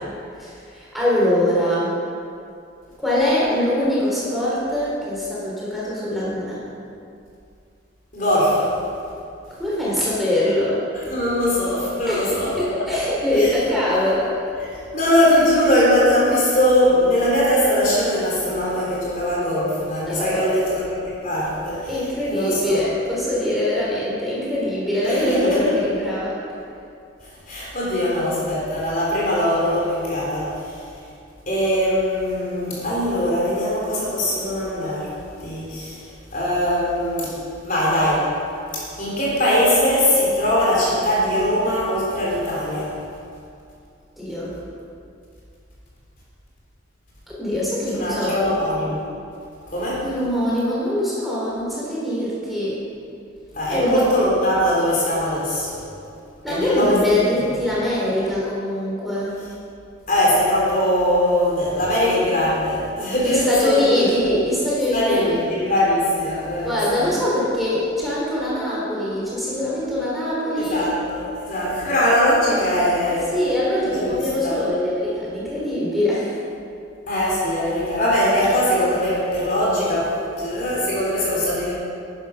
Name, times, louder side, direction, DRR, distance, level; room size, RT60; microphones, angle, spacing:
voice 1, 0.4-1.9 3.0-6.6 9.5-10.8 12.1-14.3 20.0-20.5 21.9-26.3 44.2-44.5 47.3-48.5 50.0-52.8 53.7-54.0 56.4-59.4 63.2-65.4 66.6-70.9 73.3-76.4, left 1 dB, ahead, -8 dB, 4.0 m, -23 dB
voice 2, 8.1-8.7 11.1-12.6 13.4-13.5 14.9-22.0 22.3-22.8 25.0-25.6 27.2-30.9 31.5-35.1 35.4-36.1 36.3-37.4 37.6-38.3 38.7-42.9 48.0-49.0 49.7-50.0 53.5-55.8 56.5-57.0 60.1-64.1 64.9-67.1 70.6-73.3 74.0-74.2 74.4-74.6 77.1-81.7, left 1 dB, 40° left, -6 dB, 3.7 m, -21 dB
13.5 x 11.0 x 5.8 m, 2.5 s
head